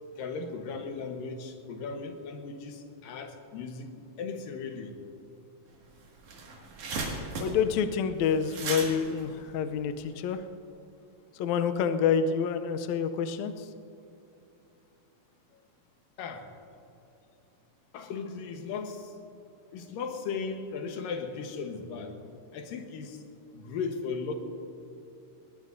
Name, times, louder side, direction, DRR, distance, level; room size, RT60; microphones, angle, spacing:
voice 1, 0.2-3.9 4.2-4.9 16.2-16.5 17.9-19.1 19.7-22.2 22.5-23.2 23.5-24.4, left 5 dB, 70° left, 4 dB, 2.8 m, -37 dB
sound 1, 5.7-5.8 6.1-10.3, right 3 dB, 55° right, 3.3 m, -37 dB
voice 2, 7.4-10.4 11.4-13.5, left 7 dB, 90° left, 8 dB, 1.6 m, -27 dB
20.5 x 19.5 x 2.7 m, 2.8 s
omnidirectional pair, 4.2 m